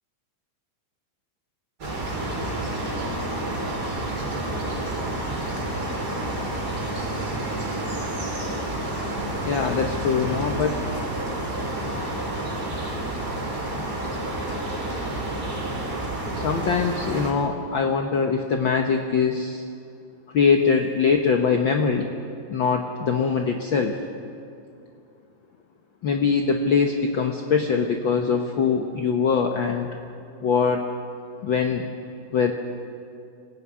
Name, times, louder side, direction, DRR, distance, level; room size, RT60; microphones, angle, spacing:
sound 1, 1.8-17.3, right 1 dB, 30° right, 4.2 m, -29 dB
voice 1, 9.4-10.8 16.3-19.6 20.3-22.1 22.5-24.0 26.0-29.9 30.4-30.8 31.4-31.9 32.3-32.5, left 5 dB, 65° left, 4 dB, 1.2 m, -22 dB
24.5 x 16.5 x 9.9 m, 2.5 s
omnidirectional pair, 3.7 m